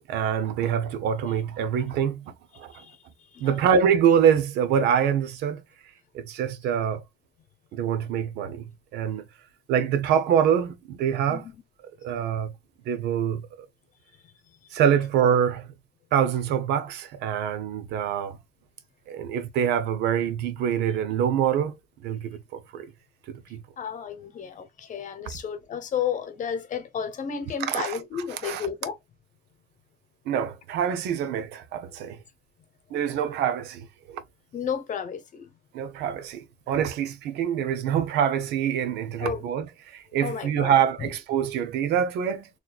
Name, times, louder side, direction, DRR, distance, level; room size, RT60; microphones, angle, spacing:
voice 1, 0.1-2.2 2.6-2.7 3.4-5.6 6.1-7.0 7.7-9.2 9.7-11.4 12.0-12.5 12.9-13.5 14.7-15.7 16.1-18.4 19.1-21.8 22.0-22.8 23.3-23.6 27.7-28.0 28.4-28.7 30.3-32.2 32.9-34.2 35.7-42.5, right 8 dB, 80° right, 0.8 m, -25 dB
voice 2, 2.7-3.6 11.3-11.6 23.8-29.0 34.5-35.5 39.2-39.4 40.2-41.1, left 7 dB, 50° left, 1.1 m, -33 dB
4.0 x 3.2 x 2.4 m
cardioid pair, 110°, 17 cm